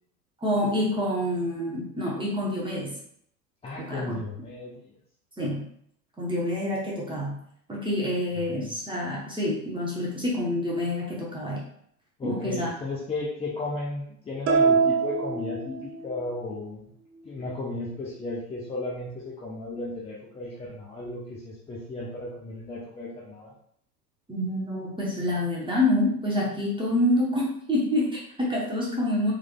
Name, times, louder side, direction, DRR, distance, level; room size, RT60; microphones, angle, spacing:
voice 1, 0.4-2.9 3.8-4.2 5.4-5.7 6.2-7.4 7.7-11.6 12.2-12.7 24.3-29.3, left 1 dB, 10° right, -5 dB, 0.9 m, -27 dB
voice 2, 3.6-4.7 8.5-8.7 12.2-16.9 17.2-23.5, left 2 dB, 15° left, -5 dB, 0.5 m, -34 dB
sound 1, 14.5-16.3, right 5 dB, 30° right, 0.6 m, -24 dB
3.5 x 3.2 x 2.3 m, 0.67 s
figure-of-eight pair, 85°, 47 cm